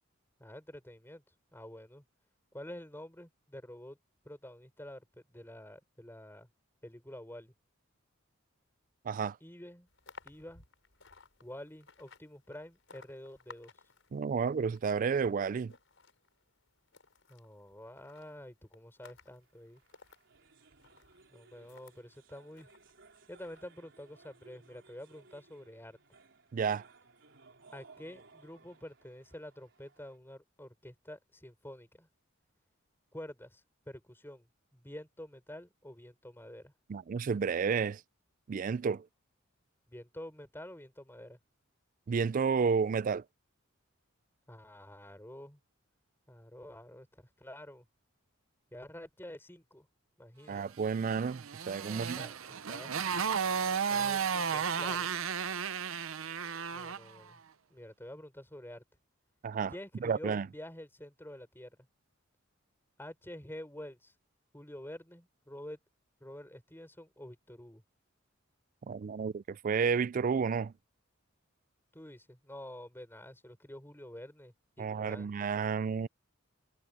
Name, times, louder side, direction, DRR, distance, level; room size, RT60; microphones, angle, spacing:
voice 1, 0.4-1.2 1.5-2.0 2.5-4.0 4.2-6.5 6.8-7.5 9.4-9.9 10.2-10.6 11.4-13.7 17.3-19.8 21.3-22.7 23.3-26.0 27.7-32.1 33.1-36.7 39.9-41.4 44.5-45.6 46.3-47.8 48.7-49.9 50.2-50.6 51.9-53.1 53.9-55.1 56.7-57.4 57.7-58.8 59.7-61.8 63.0-64.1 64.5-65.8 66.2-67.8 71.9-75.3, left 1 dB, 10° left, 5.6 m, -48 dB
voice 2, 9.1-9.4 14.1-15.7 26.5-26.8 36.9-38.0 38.5-39.0 42.1-43.2 50.5-52.2 59.4-59.7 60.0-60.5 68.9-70.7 74.8-76.1, right 6 dB, 40° right, 0.3 m, -31 dB
sound 1, 9.9-22.0 22.5-23.6, left 4 dB, 70° left, 6.5 m, -59 dB
sound 2, 19.4-30.2, right 3 dB, 60° right, 4.4 m, -61 dB
Motorcycle, 51.0-57.1, right 6 dB, 80° right, 0.8 m, -33 dB
head